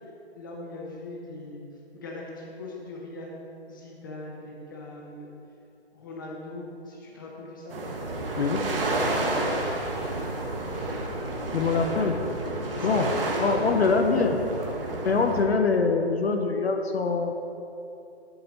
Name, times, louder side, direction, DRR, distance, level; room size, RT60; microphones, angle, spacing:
voice 1, 0.3-1.6 1.9-3.3 3.7-5.3 5.9-7.8 11.6-12.1 12.7-14.4, left 2 dB, 20° left, -2 dB, 0.8 m, -39 dB
sound 1, 7.7-15.4, right 2 dB, 60° right, 1.4 m, -30 dB
voice 2, 11.5-12.2 12.8-13.1 13.4-14.3 15.0-17.3, left 4 dB, 70° left, 5 dB, 0.7 m, -24 dB
10.5 x 4.5 x 3.9 m, 2.8 s
hypercardioid pair, 160°, 33 cm